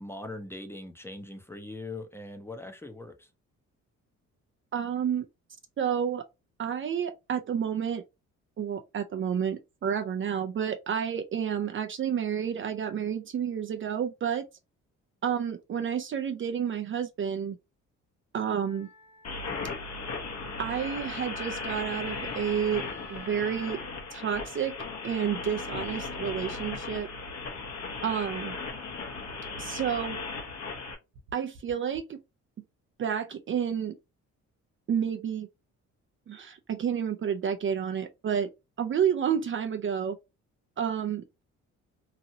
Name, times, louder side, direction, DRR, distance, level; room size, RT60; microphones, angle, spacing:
voice 1, 0.0-3.3, left 2 dB, 10° left, 0.6 m, -41 dB
voice 2, 4.7-5.3 5.8-6.2 6.6-8.0 8.6-14.4 15.2-17.6 18.3-18.9 20.6-22.8 23.1-23.8 24.1-24.7 25.0-27.1 28.0-28.6 29.6-30.2 31.3-32.2 33.0-34.0 34.9-35.5 36.3-38.5 38.8-40.2 40.8-41.4, right 8 dB, 40° right, 0.4 m, -30 dB
Wind instrument woodwind instrument, 18.6-23.8, left 1 dB, 35° left, 1.3 m, -52 dB
sound 1, 19.2-30.9, left 4 dB, 60° left, 1.0 m, -37 dB
sound 2, 26.9-32.0, right 3 dB, 80° right, 0.9 m, -51 dB
3.0 x 2.6 x 2.6 m
cardioid pair, 90°, 30 cm